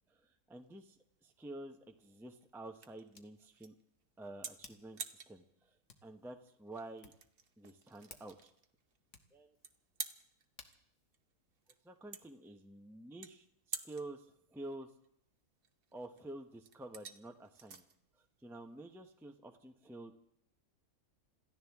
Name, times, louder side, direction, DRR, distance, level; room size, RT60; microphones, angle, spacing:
voice 1, 0.1-3.7 4.2-5.8 6.0-7.1 7.6-8.5 9.3-9.5 11.8-14.9 15.9-17.8 18.2-20.2, right 2 dB, ahead, 5 dB, 0.7 m, -50 dB
sound 1, 0.5-19.3, right 6 dB, 45° right, 1.0 m, -51 dB
Hands, 1.5-12.3, left 4 dB, 55° left, 1.5 m, -64 dB
27.0 x 14.5 x 3.6 m, 0.72 s
omnidirectional pair, 1.6 m